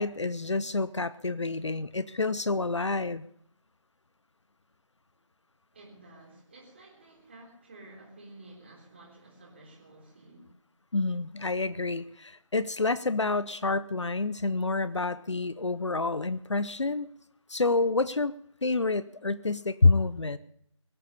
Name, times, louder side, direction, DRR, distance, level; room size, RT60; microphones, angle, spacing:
voice 1, 0.0-3.3 10.9-17.1 17.5-18.3 18.6-20.4, left 3 dB, 60° left, 16 dB, 0.7 m, -28 dB
voice 2, 5.7-10.5, right 2 dB, 20° right, -2 dB, 3.6 m, -52 dB
23.0 x 8.4 x 6.8 m, 0.70 s
figure-of-eight pair, 170°, 17 cm